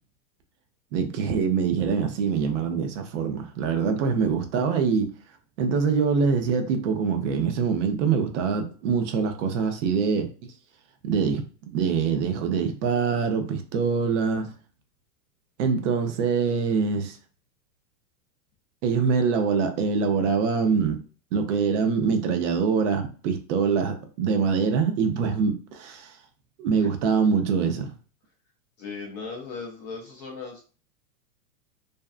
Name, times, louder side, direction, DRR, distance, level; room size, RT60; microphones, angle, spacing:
voice 1, 0.9-5.1 5.6-10.3 11.0-11.4 11.7-14.5 15.6-17.2 18.8-21.0 21.3-26.1 26.6-27.9, right 5 dB, 50° right, 0.6 m, -24 dB
voice 2, 28.8-30.6, left 4 dB, 30° left, 0.4 m, -37 dB
2.6 x 2.2 x 2.3 m
hypercardioid pair, 135°, 48 cm